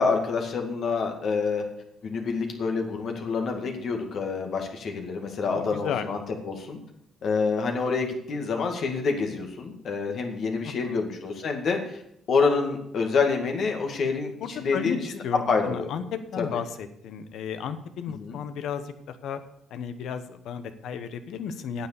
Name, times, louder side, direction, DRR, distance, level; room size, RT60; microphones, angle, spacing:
voice 1, 0.0-1.6 2.0-6.8 7.2-12.0 12.3-15.0 15.5-15.9 16.4-16.5 18.2-18.4, left 4 dB, 60° left, 3 dB, 2.0 m, -27 dB
voice 2, 5.5-6.1 10.6-11.0 14.4-19.4 19.7-21.9, left 7 dB, 80° left, 11 dB, 1.0 m, -34 dB
9.1 x 7.3 x 8.4 m, 0.77 s
cardioid pair, 90°, 0 cm